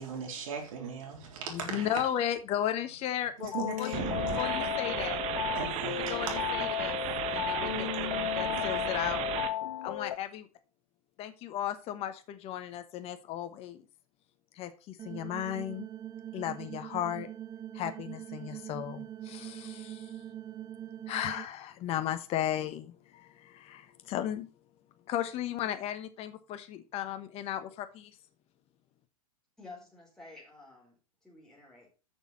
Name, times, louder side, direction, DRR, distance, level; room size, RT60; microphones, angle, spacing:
voice 1, 0.0-2.0 3.4-4.4 5.5-6.2 7.3-7.6, right 6 dB, 65° right, 3.6 m, -39 dB
voice 2, 1.5-3.5 3.8-5.2 6.1-7.0 7.3-9.2 9.8-10.5 11.2-13.8 14.5-15.9 16.3-17.3 17.7-20.2 21.1-24.5 25.1-28.1, left 11 dB, 35° left, 1.1 m, -35 dB
sound 1, 3.5-10.2, left 12 dB, 75° left, 0.6 m, -34 dB
sound 2, 3.9-9.5, right 12 dB, 35° right, 1.0 m, -35 dB
sound 3, 15.0-21.5, right 11 dB, 20° right, 0.4 m, -43 dB
voice 3, 29.6-31.0 31.2-31.9, left 3 dB, 5° left, 4.6 m, -51 dB
6.8 x 6.5 x 5.6 m
hypercardioid pair, 120°, 18 cm